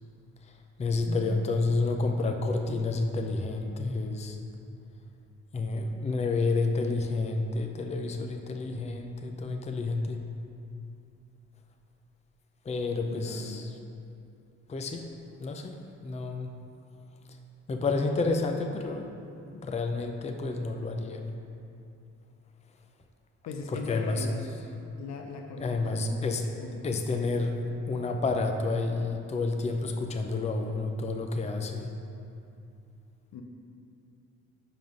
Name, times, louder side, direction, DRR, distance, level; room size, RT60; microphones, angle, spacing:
voice 1, 0.4-4.4 5.5-10.2 12.6-13.8 14.7-15.1 15.4-16.5 17.7-19.2 19.5-21.3 23.7-24.3 25.6-26.5 26.8-32.0, left 3 dB, 20° left, 4 dB, 0.5 m, -30 dB
voice 2, 1.1-1.4 13.1-13.6 23.5-24.4 25.0-27.0 33.3-33.4, left 4 dB, 65° left, 3 dB, 0.7 m, -39 dB
5.8 x 5.3 x 5.1 m, 2.6 s
cardioid pair, 90°, 30 cm